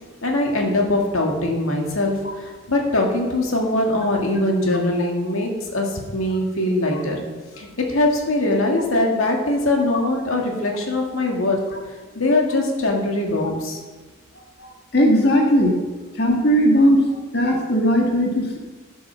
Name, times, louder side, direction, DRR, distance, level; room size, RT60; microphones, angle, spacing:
voice 1, 0.2-7.2 7.6-11.6 12.2-13.8, left 2 dB, 85° left, 1 dB, 1.9 m, -22 dB
voice 2, 14.9-15.8 16.2-17.0 17.3-18.6, equal, 50° left, 0 dB, 1.6 m, -17 dB
12.0 x 6.9 x 6.2 m, 1.3 s
head